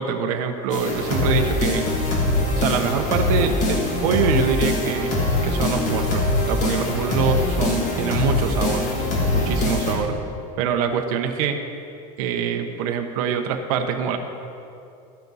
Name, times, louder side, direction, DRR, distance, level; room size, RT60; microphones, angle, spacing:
voice 1, 0.0-1.9 2.6-5.1 5.4-8.8 9.3-10.1 10.6-11.6 12.2-14.2, right 7 dB, 80° right, 5 dB, 1.0 m, -24 dB
sound 1, 0.7-10.0, left 2 dB, 40° left, 2.5 m, -23 dB
14.0 x 10.5 x 4.1 m, 2.6 s
cardioid pair, 170°, 19 cm